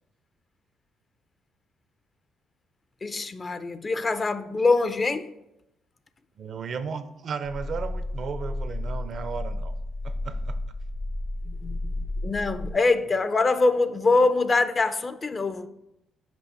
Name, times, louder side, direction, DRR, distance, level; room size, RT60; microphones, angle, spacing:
voice 1, 3.0-5.3 11.4-15.7, left 3 dB, 30° left, 0.4 m, -24 dB
voice 2, 6.4-9.7 10.0-10.6, right 6 dB, 55° right, 0.5 m, -35 dB
sound 1, 7.4-12.7, left 1 dB, 60° left, 0.9 m, -32 dB
6.1 x 4.9 x 4.2 m
supercardioid pair, 75°, 0 cm